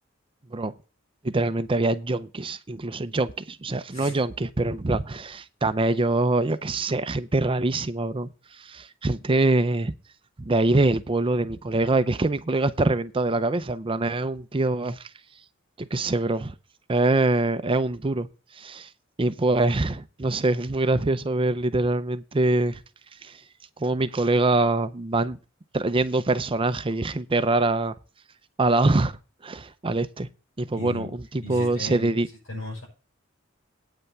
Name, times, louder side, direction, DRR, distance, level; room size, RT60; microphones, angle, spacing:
voice 1, 1.2-9.9 10.4-15.1 15.8-16.5 16.9-18.3 18.5-18.9 19.2-22.8 23.2-23.4 23.8-25.4 25.7-27.9 28.6-29.1 29.4-30.3 30.6-32.3, right 2 dB, 25° right, 0.5 m, -24 dB
voice 2, 30.7-31.1 31.4-32.1 32.5-32.8, left 1 dB, 90° left, 6.4 m, -36 dB
9.0 x 5.6 x 8.1 m
head